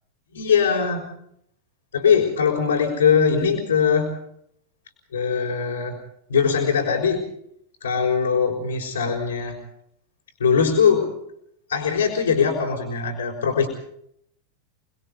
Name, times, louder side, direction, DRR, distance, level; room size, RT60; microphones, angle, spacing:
voice 1, 0.3-1.1 1.9-4.1 5.1-6.0 6.3-7.2 7.8-9.6 10.4-11.1 11.7-13.7, left 6 dB, 70° left, -3 dB, 5.2 m, -21 dB
30.0 x 21.5 x 4.1 m, 0.72 s
figure-of-eight pair, 90°, 0 cm